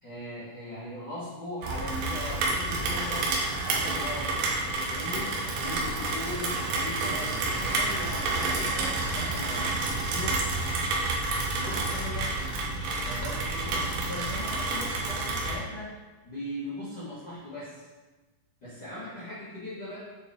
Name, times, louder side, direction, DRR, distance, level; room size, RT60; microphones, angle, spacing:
voice 1, 0.0-4.4 4.7-9.8 10.0-10.5 11.5-12.4 13.0-15.9 16.2-17.8 18.6-20.0, left 1 dB, 70° left, -13 dB, 0.9 m, -39 dB
Rain, 1.6-15.6, right 2 dB, 85° right, 2.1 m, -29 dB
7.9 x 4.4 x 3.5 m, 1.2 s
omnidirectional pair, 5.6 m